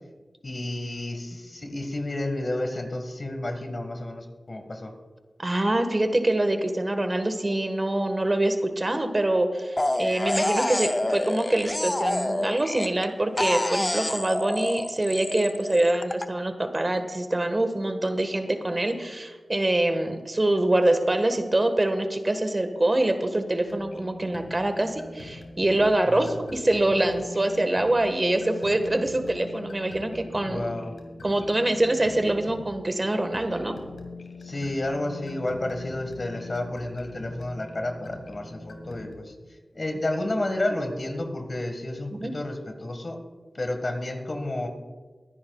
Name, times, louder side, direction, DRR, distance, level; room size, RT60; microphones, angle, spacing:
voice 1, 0.4-4.9 26.0-26.4 30.4-31.0 34.4-39.3 39.7-43.2 43.5-44.7, left 1 dB, 50° left, 5 dB, 1.6 m, -31 dB
voice 2, 5.4-30.7 31.2-33.7 42.1-42.3, right 1 dB, 35° right, 7 dB, 1.5 m, -25 dB
sound 1, 9.8-13.1 13.4-16.3, left 1 dB, 25° left, 0.6 m, -28 dB
sound 2, 23.7-39.1, left 3 dB, 90° left, 1.6 m, -43 dB
22.0 x 10.0 x 2.4 m, 1.3 s
cardioid pair, 40°, 0 cm